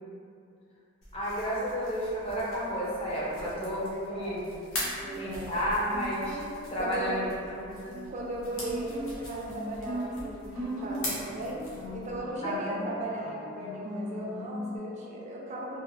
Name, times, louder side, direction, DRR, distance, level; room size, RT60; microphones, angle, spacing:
sound 1, 1.0-12.2, left 1 dB, 65° left, 0.8 m, -42 dB
voice 1, 1.1-4.4 5.1-6.4 6.7-7.2 7.6-8.0 12.4-12.6, equal, 25° left, -7 dB, 0.6 m, -31 dB
voice 2, 3.3-4.4 5.0-5.9 6.8-7.2 8.1-11.7 11.9-15.8, right 1 dB, 30° right, -3 dB, 0.4 m, -37 dB
Guitar, 4.8-14.8, equal, 80° right, 0.8 m, -39 dB
2.8 x 2.0 x 2.9 m, 2.5 s
head